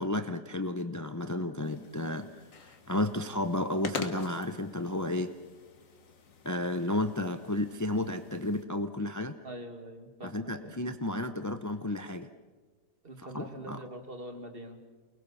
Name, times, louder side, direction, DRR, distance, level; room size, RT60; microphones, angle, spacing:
voice 1, 0.0-2.3 2.9-5.3 6.4-9.4 10.2-12.3 13.3-13.8, left 1 dB, 25° left, 9 dB, 0.3 m, -32 dB
sound 1, 1.6-8.6, left 5 dB, 50° left, 1.8 m, -45 dB
voice 2, 9.4-10.8 13.0-14.8, right 1 dB, 35° right, 5 dB, 2.3 m, -44 dB
29.0 x 21.0 x 7.1 m, 1.3 s
omnidirectional pair, 1.8 m